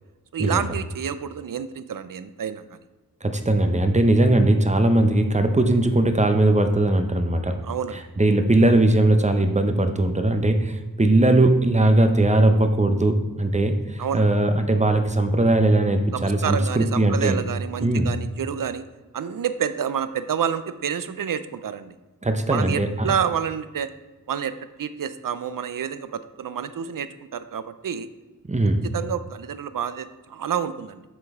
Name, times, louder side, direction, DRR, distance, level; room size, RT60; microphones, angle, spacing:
voice 1, 0.3-2.8 7.6-8.0 14.0-14.2 16.1-18.8 19.1-21.9 22.5-23.9 24.3-28.1 28.9-31.0, right 8 dB, 65° right, 13 dB, 0.5 m, -28 dB
voice 2, 3.2-7.5 8.2-17.4 17.8-18.1 22.2-23.1 28.5-28.8, right 1 dB, 20° right, 7 dB, 0.7 m, -19 dB
7.7 x 5.2 x 3.6 m, 1.2 s
wide cardioid pair, 85°, 36 cm